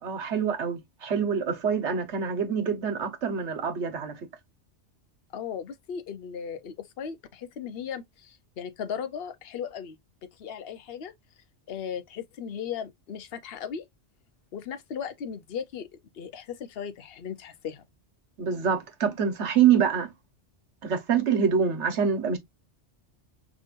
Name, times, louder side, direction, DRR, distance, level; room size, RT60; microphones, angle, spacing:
voice 1, 0.0-4.3 18.4-20.1 20.8-22.4, right 7 dB, 80° right, 1.4 m, -25 dB
voice 2, 5.3-10.0 10.2-11.1 11.7-13.8 14.5-15.9 16.1-17.8, left 7 dB, 60° left, 0.9 m, -37 dB
5.2 x 3.6 x 2.5 m
omnidirectional pair, 1.2 m